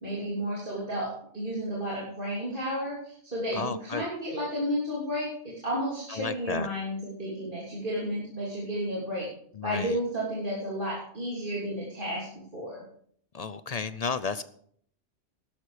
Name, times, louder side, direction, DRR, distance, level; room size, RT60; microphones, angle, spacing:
voice 1, 0.0-9.3 9.6-12.3 12.5-12.8, equal, 45° right, -6 dB, 3.4 m, -32 dB
voice 2, 3.5-4.0 6.1-6.7 9.6-10.0 13.3-14.4, left 5 dB, 50° left, 14 dB, 0.5 m, -33 dB
12.5 x 11.5 x 4.9 m, 0.63 s
omnidirectional pair, 1.2 m